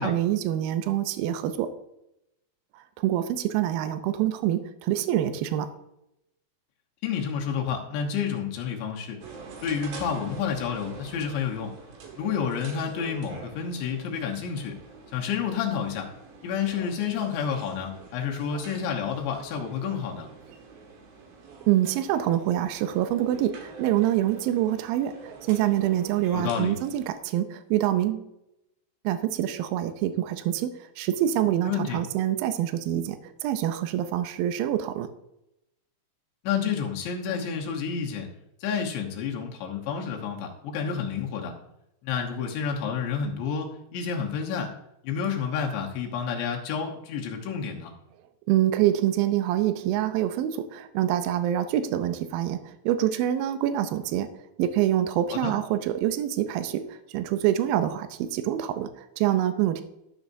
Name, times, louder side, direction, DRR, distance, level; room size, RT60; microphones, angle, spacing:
voice 1, 0.0-1.7 2.7-5.7 21.7-28.3 29.0-30.7 31.0-35.1 48.5-54.3 54.6-59.8, right 12 dB, 85° right, 9 dB, 2.0 m, -26 dB
voice 2, 7.0-9.2 9.6-11.7 12.2-14.8 15.1-16.1 16.4-20.3 26.3-26.7 31.6-32.0 36.4-38.3 38.6-41.5 42.0-44.7 45.0-47.9 55.3-55.5, left 7 dB, 85° left, 0 dB, 3.4 m, -29 dB
sound 1, 9.2-27.1, right 4 dB, 65° right, 3.0 m, -46 dB
13.0 x 7.2 x 2.7 m, 0.85 s
omnidirectional pair, 5.0 m